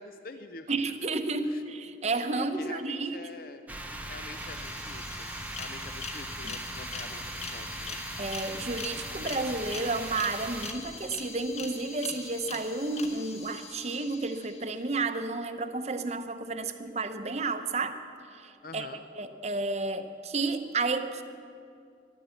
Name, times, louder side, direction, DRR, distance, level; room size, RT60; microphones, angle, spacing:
voice 1, 0.0-0.7 1.4-2.0 2.3-3.7 4.0-8.0 18.6-19.0, left 3 dB, 50° left, 8 dB, 0.6 m, -46 dB
voice 2, 0.7-3.2 6.4-6.5 8.2-18.0 18.3-18.9 19.2-21.2, right 3 dB, 35° right, 9 dB, 0.7 m, -31 dB
sound 1, 3.7-10.7, right 1 dB, 10° right, 0.8 m, -39 dB
sound 2, 4.2-15.0, left 4 dB, 35° left, 1.5 m, -43 dB
14.0 x 11.5 x 8.1 m, 2.4 s
head